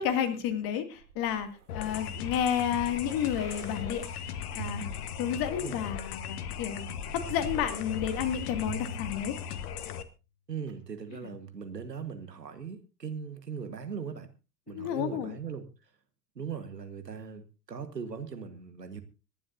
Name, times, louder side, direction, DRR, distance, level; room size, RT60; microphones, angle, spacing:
voice 1, 0.0-1.5 1.7-4.0 4.5-4.9 5.2-6.9 7.1-9.3 11.2-11.3 14.7-15.4, left 9 dB, 45° left, 9 dB, 2.4 m, -31 dB
sound 1, 1.0-5.9 6.6-9.9 10.7-10.8, right 2 dB, 75° right, 2.7 m, -44 dB
sound 2, 1.7-10.0, left 8 dB, 70° left, 1.4 m, -38 dB
voice 2, 10.5-14.3 14.7-15.7 16.3-19.0, right 6 dB, 90° right, 10 dB, 1.6 m, -39 dB
25.0 x 11.0 x 2.7 m, 0.30 s
figure-of-eight pair, 80°, 48 cm